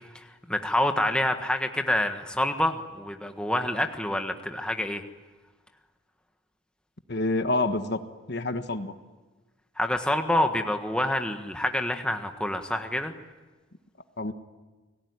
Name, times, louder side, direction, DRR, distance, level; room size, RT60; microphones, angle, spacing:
voice 1, 0.1-5.0 9.8-13.1, left 1 dB, 5° left, 5 dB, 1.5 m, -27 dB
voice 2, 7.1-8.0 8.3-8.9 14.2-14.3, left 2 dB, 55° left, 8 dB, 1.4 m, -27 dB
29.5 x 19.5 x 9.7 m, 1.3 s
head